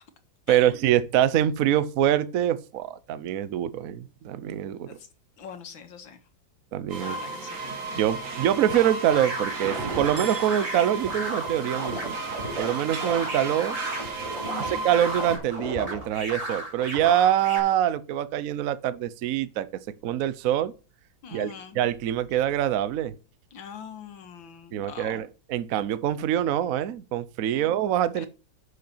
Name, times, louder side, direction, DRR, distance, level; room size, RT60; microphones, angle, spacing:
voice 1, 0.5-5.0 6.7-7.1 7.9-12.2 12.6-13.8 14.5-19.7 20.0-20.7 21.3-21.5 21.7-23.1 24.7-28.3, right 11 dB, 60° right, 1.0 m, -25 dB
voice 2, 5.4-6.2 7.0-7.6 8.1-8.3 14.4-14.8 21.2-21.8 22.3-22.4 23.5-25.2 27.5-27.7 28.2-28.3, left 7 dB, 90° left, 2.2 m, -43 dB
sound 1, 6.9-15.4, right 3 dB, 45° right, 2.0 m, -34 dB
sound 2, 8.7-17.6, right 1 dB, 20° right, 3.1 m, -35 dB
10.5 x 6.7 x 4.4 m
omnidirectional pair, 2.1 m